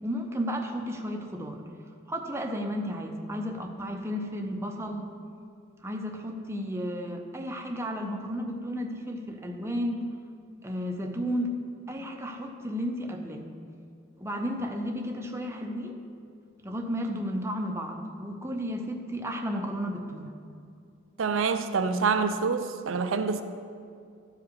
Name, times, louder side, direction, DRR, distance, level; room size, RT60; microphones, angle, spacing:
voice 1, 0.0-1.6 2.1-5.1 5.8-10.1 10.6-11.6 11.9-13.5 14.2-16.0 16.6-20.3, equal, 15° right, 3 dB, 0.7 m, -33 dB
voice 2, 21.2-23.4, right 5 dB, 80° right, 9 dB, 0.5 m, -26 dB
13.0 x 4.8 x 4.7 m, 2.4 s
head